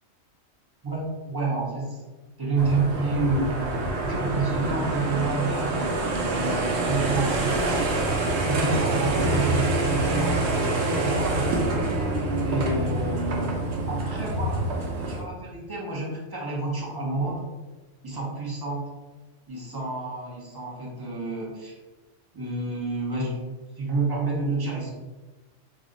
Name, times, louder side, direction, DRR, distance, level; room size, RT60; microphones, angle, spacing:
voice 1, 0.8-2.0 2.4-3.6 4.0-7.9 8.5-11.8 12.4-14.6 15.0-17.4 18.0-18.9 19.5-21.7 22.3-23.5 23.8-24.9, right 3 dB, 30° right, -4 dB, 0.4 m, -29 dB
sound 1, 2.6-15.2, right 2 dB, 65° right, 0.8 m, -26 dB
2.4 x 2.1 x 3.7 m, 1.2 s
omnidirectional pair, 1.3 m